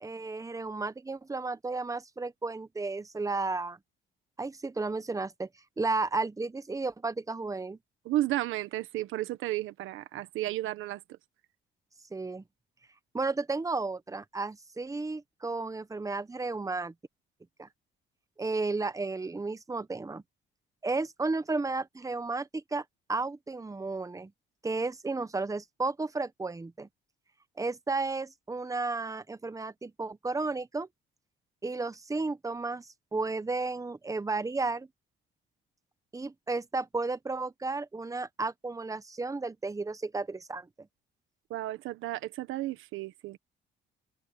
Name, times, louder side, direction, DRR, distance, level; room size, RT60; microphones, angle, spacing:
voice 1, 0.0-3.8 4.4-5.5 5.8-7.8 12.1-12.4 13.1-16.9 17.6-17.7 18.4-20.2 20.8-22.8 23.1-24.3 24.6-26.9 27.6-30.9 31.6-34.9 36.1-40.7, right 3 dB, 15° right, 1.1 m, -33 dB
voice 2, 8.0-11.0 41.5-43.4, right 15 dB, 90° right, 1.3 m, -33 dB
cardioid pair, 90°, 20 cm